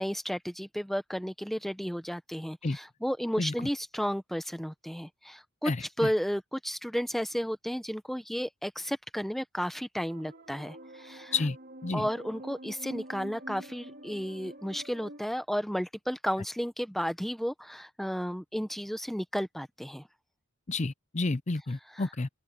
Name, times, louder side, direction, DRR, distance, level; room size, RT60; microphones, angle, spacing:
voice 1, 0.0-11.3 11.9-20.0 21.9-22.1, equal, ahead, 0.9 m, -33 dB
sound 1, 10.0-15.2, right 1 dB, 50° right, 3.2 m, -46 dB
voice 2, 20.7-22.3, left 3 dB, 35° left, 0.6 m, -30 dB
open air
head